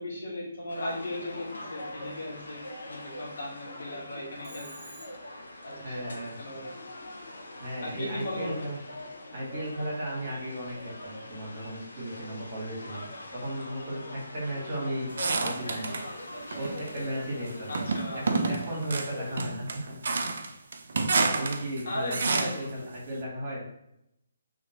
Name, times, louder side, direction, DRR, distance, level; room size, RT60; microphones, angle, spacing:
voice 1, 0.0-2.6 2.9-4.8 5.6-6.7 7.8-8.7 17.7-18.2 21.8-22.7, left 1 dB, 60° left, -4 dB, 1.1 m, -37 dB
sound 1, 0.7-19.4, left 1 dB, 75° left, 0.5 m, -43 dB
Telephone, 4.4-5.5, right 1 dB, 5° right, 0.8 m, -49 dB
voice 2, 5.7-6.4 7.6-8.8 9.1-15.1 15.4-16.0 16.6-17.7 18.1-19.9 20.2-20.3 21.2-23.6, right 1 dB, 45° right, -4 dB, 1.2 m, -35 dB
sound 2, 15.2-16.1 16.5-17.1 17.7-22.7, right 3 dB, 60° right, 0.3 m, -29 dB
2.9 x 2.4 x 2.8 m, 0.79 s
figure-of-eight pair, 140°, 0 cm